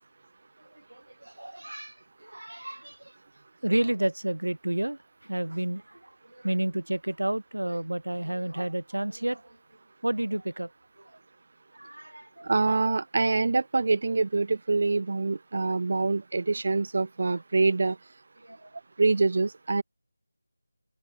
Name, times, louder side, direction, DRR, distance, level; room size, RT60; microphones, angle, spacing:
voice 1, 0.9-1.9 2.2-3.0 3.6-9.4 10.0-10.7 11.7-12.5 18.4-18.7, right 1 dB, 70° right, 7.5 m, -31 dB
voice 2, 12.4-18.0 19.0-19.8, right 3 dB, 45° right, 3.3 m, -25 dB
figure-of-eight pair, 165°, 0 cm